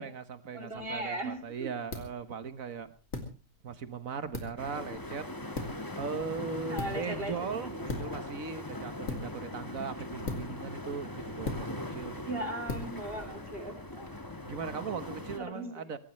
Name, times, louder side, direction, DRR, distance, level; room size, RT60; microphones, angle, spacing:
voice 1, 0.0-2.9 3.6-5.3 6.0-12.4 14.4-16.0, right 6 dB, 65° right, 12 dB, 1.6 m, -39 dB
voice 2, 0.5-1.7 6.7-7.3 7.7-8.1 12.3-14.2 15.2-15.9, right 1 dB, 40° right, 5 dB, 3.3 m, -38 dB
sound 1, 0.7-14.2, left 2 dB, 65° left, 3.0 m, -43 dB
sound 2, 4.6-15.4, left 1 dB, 15° left, 1.5 m, -41 dB
23.0 x 17.0 x 3.2 m, 0.32 s
omnidirectional pair, 1.5 m